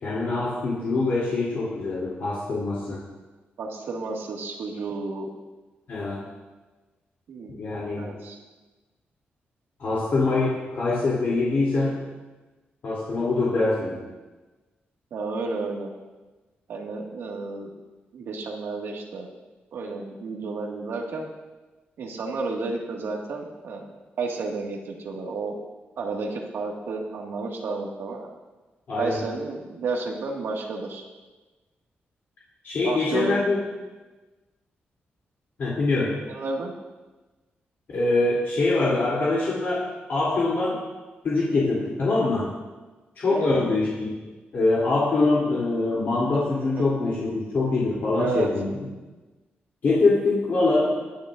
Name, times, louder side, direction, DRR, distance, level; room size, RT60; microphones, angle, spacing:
voice 1, 0.0-3.0 5.9-6.2 7.6-8.1 9.8-12.0 12.8-14.0 28.9-29.2 32.6-33.6 35.6-36.2 37.9-40.8 41.2-42.5 43.2-44.1 44.5-48.8 49.8-51.0, left 3 dB, 55° left, -7 dB, 3.0 m, -24 dB
voice 2, 3.6-5.3 7.3-7.5 8.0-8.4 15.1-15.9 16.7-17.7 18.1-19.3 19.7-21.3 22.0-23.9 24.2-25.6 26.0-28.3 29.0-31.0 32.8-33.5 36.3-36.7 43.3-43.7 46.8-46.9 48.2-48.5, right 3 dB, 90° right, 0 dB, 1.9 m, -31 dB
22.5 x 10.0 x 2.6 m, 1.2 s
wide cardioid pair, 170°, 4 cm